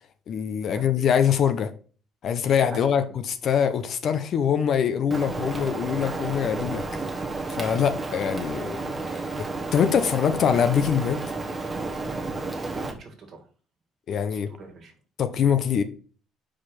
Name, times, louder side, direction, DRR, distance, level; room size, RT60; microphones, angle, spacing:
voice 1, 0.3-1.7 2.2-7.0 7.5-9.5 9.7-11.2 14.1-14.5 15.2-15.8, left 8 dB, 55° left, 0.7 m, -24 dB
voice 2, 2.7-3.0 12.5-13.5 14.3-15.0, right 4 dB, 45° right, 1.8 m, -43 dB
Rain, 5.1-12.9, right 3 dB, 20° right, 1.1 m, -31 dB
5.0 x 4.6 x 5.8 m
cardioid pair, 120°, 0 cm